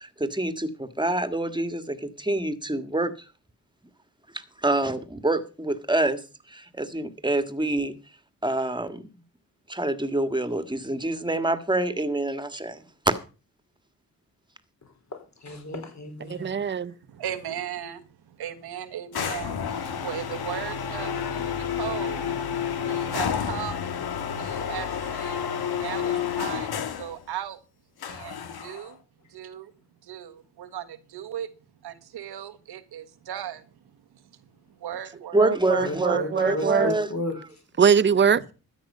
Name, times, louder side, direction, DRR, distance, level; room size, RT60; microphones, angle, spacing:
voice 1, 0.0-3.3 4.3-6.2 6.5-7.9 8.4-9.0 9.7-13.1 35.3-37.1, right 2 dB, 10° right, 1.8 m, -26 dB
voice 2, 14.8-16.4 25.8-25.9 35.8-37.6, left 2 dB, 45° left, 4.2 m, -34 dB
voice 3, 16.4-16.9 35.4-36.9 37.8-38.5, right 7 dB, 30° right, 0.7 m, -22 dB
voice 4, 17.1-22.3 22.7-23.8 24.2-27.6 28.1-29.0 29.3-29.7 30.0-31.5 31.8-33.6 34.1-34.2 34.8-36.7 38.3-38.4, right 10 dB, 85° right, 1.5 m, -37 dB
sound 1, 19.1-27.2 28.0-28.9, left 7 dB, 75° left, 1.5 m, -30 dB
13.5 x 9.0 x 5.5 m
cardioid pair, 55°, 38 cm